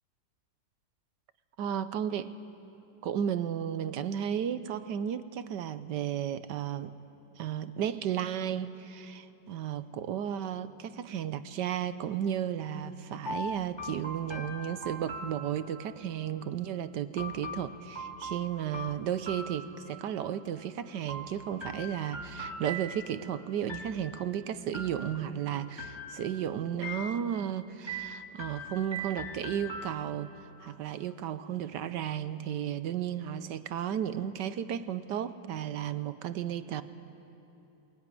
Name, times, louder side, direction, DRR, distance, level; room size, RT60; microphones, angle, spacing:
voice 1, 1.6-2.3 3.0-6.9 7.4-30.3 30.6-36.8, right 9 dB, 70° right, 12 dB, 1.3 m, -34 dB
sound 1, 13.3-16.0 17.2-20.2 21.1-23.3 23.7-24.3 24.7-25.4 25.8-26.4 26.8-27.5 27.9-30.3, right 1 dB, 15° left, 2.7 m, -41 dB
21.5 x 20.5 x 9.8 m, 3.0 s
omnidirectional pair, 2.0 m